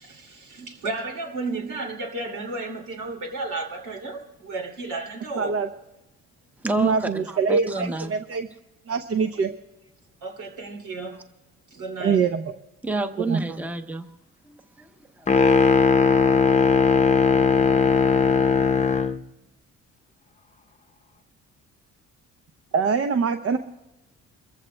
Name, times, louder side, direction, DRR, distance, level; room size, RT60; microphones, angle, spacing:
voice 1, 0.0-5.6 7.7-7.9 10.2-11.2 11.7-12.2, right 3 dB, 80° right, 2.7 m, -33 dB
voice 2, 5.4-5.7 6.8-8.5 8.9-9.5 12.0-12.4 13.2-13.4 22.7-23.6, right 5 dB, 50° right, 0.7 m, -23 dB
voice 3, 6.6-8.1 12.8-14.1 14.5-14.9 15.2-15.3, right 2 dB, 5° right, 0.8 m, -29 dB
sound 1, 15.3-19.2, left 5 dB, 25° left, 0.7 m, -18 dB
29.5 x 14.5 x 2.2 m
cardioid pair, 90°, 30 cm